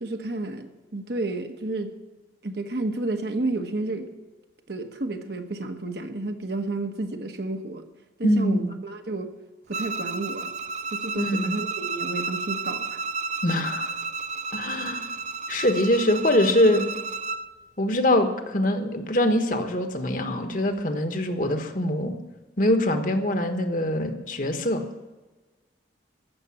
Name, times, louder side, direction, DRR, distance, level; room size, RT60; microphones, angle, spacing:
voice 1, 0.0-1.9 2.4-4.1 4.7-7.9 8.2-9.3 9.7-10.5 10.9-13.0, right 2 dB, 55° right, 6 dB, 1.2 m, -31 dB
voice 2, 8.2-8.7 11.2-11.5 13.4-13.9 14.5-15.1 15.5-16.9 17.8-22.1 22.6-24.8, left 1 dB, 45° left, 7 dB, 1.3 m, -23 dB
Bowed string instrument, 9.7-17.5, right 4 dB, 35° right, 0.4 m, -32 dB
14.5 x 6.8 x 9.8 m, 1.2 s
head